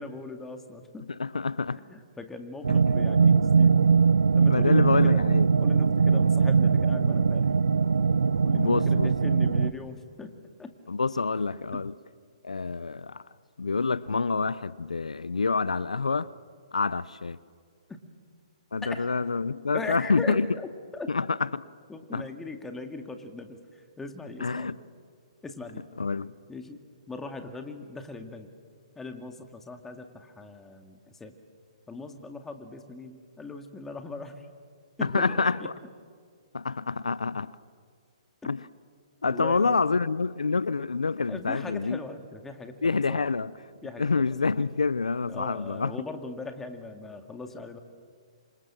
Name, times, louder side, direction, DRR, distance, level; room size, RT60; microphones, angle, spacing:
voice 1, 0.0-1.1 1.7-3.9 4.3-5.2 5.6-7.5 8.4-10.7 17.9-18.0 18.8-19.1 19.7-20.7 20.9-21.1 21.9-23.6 24.0-24.8 25.4-25.8 26.5-26.8 27.1-28.5 29.0-31.3 31.9-34.5 35.0-35.7 39.2-39.8 41.3-43.3 43.8-44.3 45.3-47.8, left 3 dB, 10° left, 2.1 m, -40 dB
voice 2, 1.1-1.8 2.8-3.0 4.5-5.5 6.1-6.2 8.5-9.1 10.9-11.9 12.4-13.2 13.6-16.3 16.7-17.4 18.7-20.5 21.1-21.7 22.1-22.3 24.4-24.8 26.0-26.3 35.0-35.7 36.5-37.6 38.4-38.7 39.2-42.0 42.8-43.5 44.0-46.0, left 4 dB, 90° left, 0.6 m, -27 dB
sound 1, 2.6-9.7, right 5 dB, 85° right, 0.8 m, -21 dB
27.5 x 26.5 x 7.5 m
hypercardioid pair, 130°, 4 cm